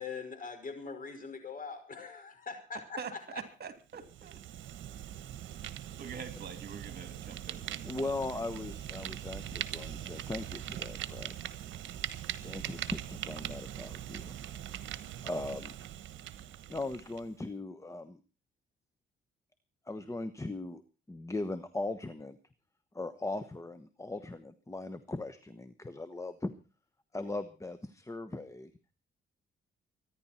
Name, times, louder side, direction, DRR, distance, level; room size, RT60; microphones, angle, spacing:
voice 1, 0.0-3.0 3.3-3.4, left 5 dB, 45° left, 7 dB, 5.4 m, -42 dB
voice 2, 3.0-4.4 6.0-8.4, right 6 dB, 50° right, 8 dB, 3.1 m, -45 dB
Fire, 3.9-17.3, right 11 dB, 75° right, 1.2 m, -41 dB
voice 3, 7.8-11.3 12.4-14.3 15.2-15.7 16.7-18.2 19.9-20.8 21.1-22.4 22.9-26.5 27.1-28.7, left 2 dB, 15° left, 11 dB, 1.2 m, -39 dB
25.0 x 10.5 x 4.4 m, 0.34 s
cardioid pair, 90°, 20 cm